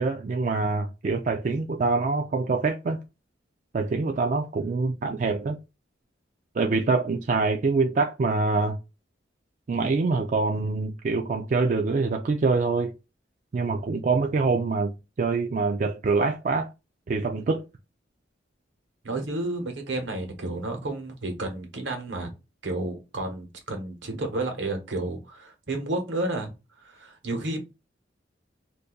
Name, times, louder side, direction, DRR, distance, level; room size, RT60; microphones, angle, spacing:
voice 1, 0.0-3.0 3.7-5.6 6.6-8.8 9.7-12.9 13.5-16.7 17.1-17.6, right 3 dB, 45° right, 0.4 m, -25 dB
voice 2, 19.0-22.3 22.6-27.6, right 2 dB, 80° right, 1.1 m, -31 dB
2.6 x 2.5 x 3.8 m
head